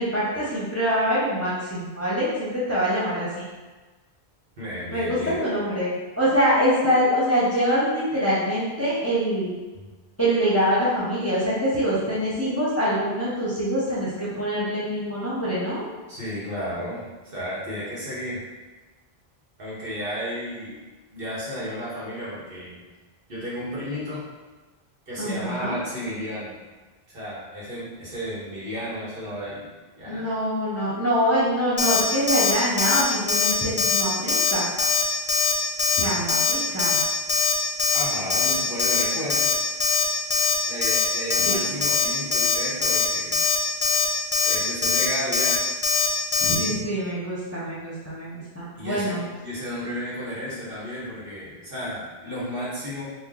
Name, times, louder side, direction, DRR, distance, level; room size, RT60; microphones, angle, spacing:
voice 1, 0.0-3.4 4.9-9.5 10.2-15.9 25.2-25.8 30.0-34.7 35.9-37.0 41.4-41.8 46.4-49.2, equal, 15° left, -9 dB, 0.7 m, -24 dB
voice 2, 4.6-5.4 9.8-9.9 16.1-18.4 19.6-20.7 21.1-22.8 23.3-24.2 25.1-26.6 27.1-29.7 30.0-30.2 37.9-39.5 40.7-43.4 44.4-45.6 48.8-49.1 49.4-53.0, equal, 60° right, -8 dB, 1.3 m, -33 dB
Alarm, 31.8-32.0 32.3-32.5 32.8-33.0 33.3-33.5 33.8-34.0 34.3-34.5 34.8-35.0 35.3-35.5 35.8-36.0 36.3-36.5 36.8-37.0 37.3-37.5 37.8-38.0 38.3-38.5 38.8-39.0 39.3-39.5 39.8-40.0 40.3-40.5 40.8-41.0 41.3-41.5 41.8-42.0 42.3-42.5 42.8-43.1 43.3-43.6 43.8-44.1 44.3-44.6 44.8-45.1 45.3-45.6 45.8-46.1 46.3-46.6, left 5 dB, 50° left, 0.3 m, -21 dB
3.0 x 2.1 x 3.7 m, 1.3 s
omnidirectional pair, 1.1 m